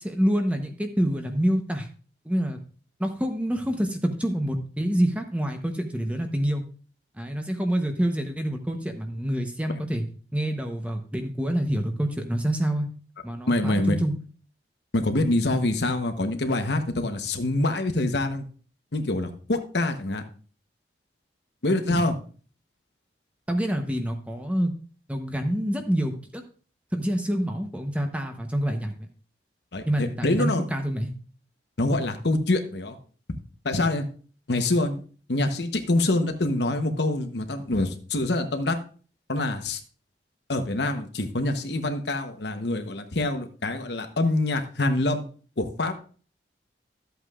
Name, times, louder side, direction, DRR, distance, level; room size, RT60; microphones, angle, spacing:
voice 1, 0.0-1.9 2.2-2.6 3.0-6.6 7.2-10.0 10.3-12.9 13.2-14.2 21.9-22.0 23.5-24.7 25.1-26.4 26.9-29.1 29.9-31.1, equal, 5° right, 5 dB, 0.9 m, -27 dB
voice 2, 13.5-14.0 14.9-18.4 18.9-20.2 21.6-22.1 29.7-30.6 31.8-33.0 33.6-34.1 34.5-35.0 35.3-38.8 39.3-39.8 40.5-45.2 45.6-45.9, left 2 dB, 70° left, 7 dB, 1.0 m, -25 dB
13.0 x 8.0 x 2.4 m, 0.40 s
head